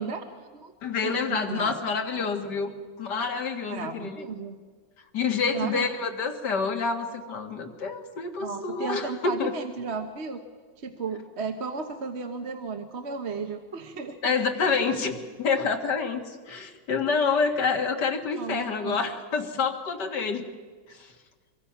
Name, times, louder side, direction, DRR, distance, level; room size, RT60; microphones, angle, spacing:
voice 1, 0.0-0.7 1.0-1.7 2.1-2.3 3.7-4.6 5.5-5.9 8.4-10.4 10.8-14.4 14.9-15.0 18.4-19.0, right 4 dB, 40° right, 6 dB, 1.3 m, -34 dB
voice 2, 0.8-2.7 3.0-4.3 5.1-9.5 14.2-20.4 20.9-21.1, left 5 dB, 70° left, 5 dB, 2.3 m, -28 dB
23.5 x 23.0 x 5.8 m, 1.5 s
omnidirectional pair, 1.9 m